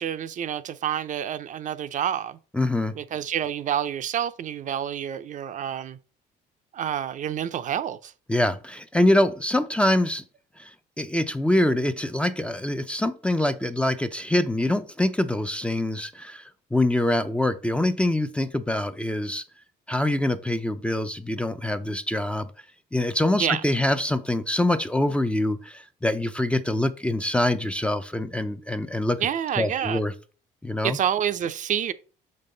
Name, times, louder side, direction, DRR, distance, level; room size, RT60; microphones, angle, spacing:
voice 1, 0.0-2.4 2.9-6.0 6.7-8.1 23.3-23.6 29.2-30.0 30.8-31.9, right 9 dB, 50° right, 0.5 m, -28 dB
voice 2, 2.5-2.9 8.3-10.2 10.6-10.7 11.0-16.4 16.7-19.4 19.9-22.5 22.9-29.2 29.6-30.1 30.6-31.0, left 1 dB, 5° left, 0.5 m, -24 dB
6.4 x 5.4 x 3.9 m
cardioid pair, 110°, 17 cm